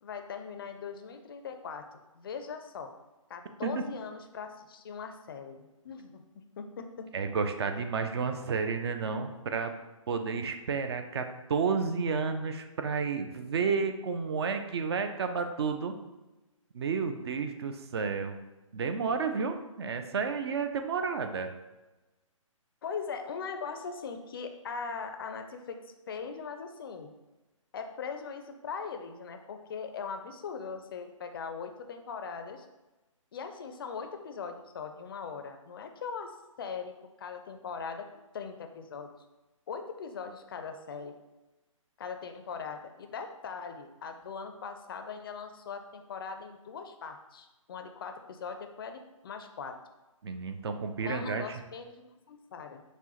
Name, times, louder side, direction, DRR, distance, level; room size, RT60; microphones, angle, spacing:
voice 1, 0.0-1.9 2.2-2.9 3.3-6.2 6.6-7.1 22.8-25.8 26.1-27.1 27.7-32.7 33.3-36.3 36.6-38.1 38.3-39.1 39.7-41.1 42.0-49.8 51.0-52.8, left 5 dB, 45° left, 6 dB, 0.4 m, -40 dB
voice 2, 7.1-9.7 10.1-15.9 16.7-18.4 18.7-21.5 50.2-51.6, right 5 dB, 50° right, 7 dB, 0.4 m, -31 dB
5.9 x 2.1 x 2.9 m, 1.1 s
hypercardioid pair, 150°, 17 cm